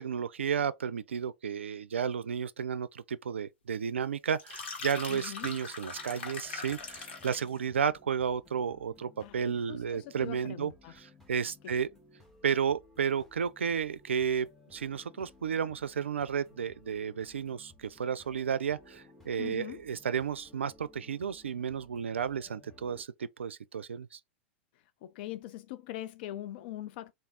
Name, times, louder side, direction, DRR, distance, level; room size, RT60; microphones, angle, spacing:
voice 1, 0.0-10.7 11.0-11.9 12.4-24.2, right 7 dB, 85° right, 0.3 m, -32 dB
sound 1, 4.3-7.6, left 4 dB, 75° left, 1.3 m, -41 dB
voice 2, 5.1-5.5 9.2-10.9 11.6-11.7 19.4-19.8 25.0-27.1, left 14 dB, 55° left, 0.3 m, -42 dB
sound 2, 5.2-23.0, left 2 dB, 5° left, 1.2 m, -59 dB
3.5 x 2.5 x 3.4 m
hypercardioid pair, 100°, 6 cm